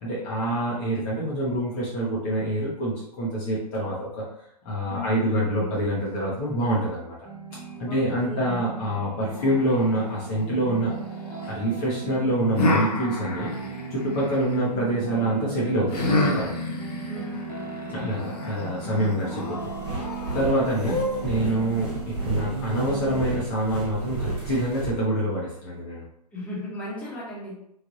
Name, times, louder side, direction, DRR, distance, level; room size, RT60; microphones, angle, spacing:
voice 1, 0.0-4.2 4.6-7.1 7.8-10.9 11.5-13.5 13.9-16.6 17.9-19.7 20.3-26.1, right 1 dB, 30° left, -6 dB, 0.8 m, -26 dB
voice 2, 4.9-5.7 7.8-8.6 17.1-18.3 26.3-27.5, left 1 dB, 5° left, -8 dB, 1.0 m, -36 dB
sound 1, 7.2-7.8 8.3-23.2, right 5 dB, 60° right, 1.0 m, -36 dB
sound 2, 9.3-11.5 12.6-14.6 15.9-21.5, left 2 dB, 70° left, 0.8 m, -30 dB
sound 3, 19.6-24.9, right 2 dB, 25° right, 1.1 m, -32 dB
3.2 x 2.5 x 2.6 m, 0.75 s
hypercardioid pair, 125°, 21 cm